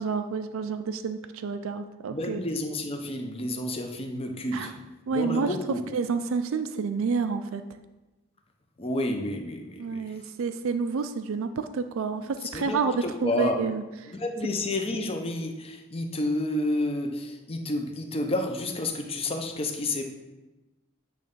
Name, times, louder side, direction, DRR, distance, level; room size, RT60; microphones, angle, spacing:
voice 1, 0.0-2.4 4.5-4.7 5.1-5.6 5.9-7.6 9.8-14.1, right 5 dB, 65° right, 9 dB, 0.4 m, -29 dB
voice 2, 2.1-4.7 5.1-5.8 8.8-10.1 12.5-13.6 14.1-20.0, left 1 dB, 25° left, 4 dB, 0.7 m, -30 dB
8.5 x 3.2 x 5.3 m, 1.1 s
head